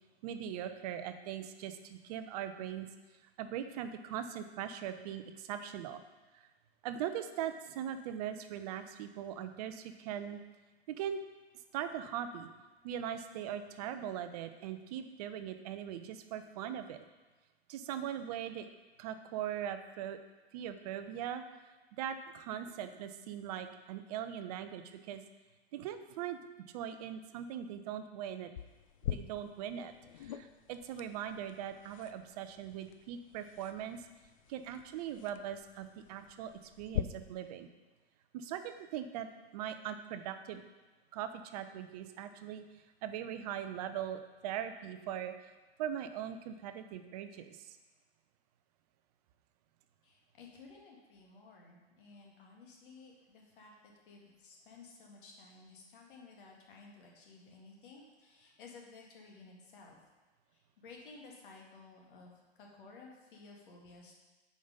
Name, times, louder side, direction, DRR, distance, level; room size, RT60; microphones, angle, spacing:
voice 1, 0.2-2.9 3.4-6.0 6.3-6.5 6.8-10.4 10.9-11.2 11.7-12.5 12.8-17.0 17.7-18.7 19.0-20.2 20.5-21.4 22.0-25.2 25.7-26.4 26.7-28.5 29.1-29.9 30.2-34.0 34.5-36.5 36.8-37.7 38.3-40.6 41.1-42.6 43.0-45.3 45.8-47.8, right 9 dB, 35° right, 9 dB, 0.7 m, -40 dB
sound 1, 28.6-37.0, left 12 dB, 35° left, 0.4 m, -44 dB
voice 2, 50.0-60.0 60.5-64.1, left 4 dB, 50° left, -1 dB, 2.0 m, -55 dB
8.6 x 5.2 x 5.3 m, 1.2 s
figure-of-eight pair, 100°, 33 cm